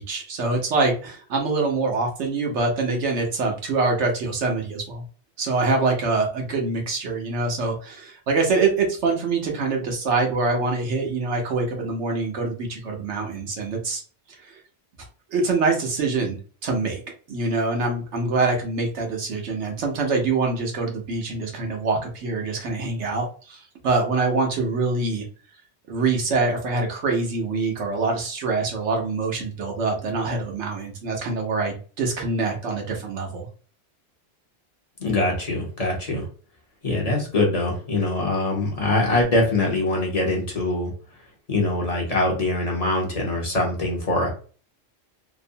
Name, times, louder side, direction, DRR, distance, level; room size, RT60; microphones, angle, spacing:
voice 1, 0.0-5.0 5.4-14.0 14.3-14.6 15.3-17.0 17.3-25.2 25.9-33.5, right 3 dB, 85° right, 1 dB, 1.1 m, -25 dB
voice 2, 35.0-36.2 36.8-40.9 41.5-44.3, left 2 dB, 40° left, -1 dB, 0.8 m, -23 dB
2.9 x 2.0 x 2.6 m, 0.39 s
omnidirectional pair, 1.1 m